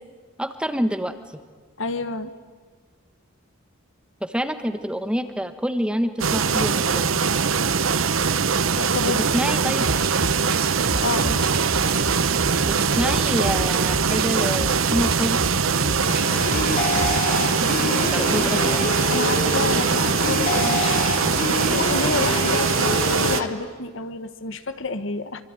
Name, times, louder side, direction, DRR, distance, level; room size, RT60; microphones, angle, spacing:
voice 1, 0.4-1.4 4.2-7.2 9.3-9.9 12.6-15.4 15.8-15.9 17.9-18.9, equal, 5° right, 9 dB, 1.2 m, -27 dB
voice 2, 1.8-2.3 8.6-9.2 11.0-11.4 17.6-18.0 19.1-21.0 21.4-25.4, left 3 dB, 65° left, 11 dB, 1.4 m, -29 dB
sound 1, 6.2-23.4, right 5 dB, 75° right, 1.0 m, -22 dB
sound 2, 9.8-17.2, right 2 dB, 50° right, 1.9 m, -31 dB
sound 3, 16.1-23.5, left 3 dB, 40° left, 2.7 m, -27 dB
25.0 x 24.5 x 9.7 m, 1.5 s
head